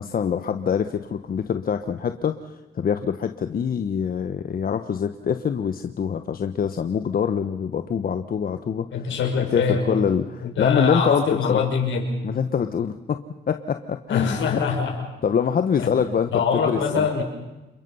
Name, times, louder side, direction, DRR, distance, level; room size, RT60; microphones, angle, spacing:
voice 1, 0.0-8.9 9.4-11.2 11.5-11.6 12.2-13.2 13.5-14.6 15.2-17.0, left 7 dB, 45° left, 8 dB, 1.1 m, -25 dB
voice 2, 8.9-10.0 10.4-12.2 14.1-15.1 15.8-15.9 16.3-17.2, left 5 dB, 70° left, 3 dB, 5.6 m, -24 dB
28.0 x 22.5 x 5.6 m, 1.1 s
cardioid pair, 90°, 20 cm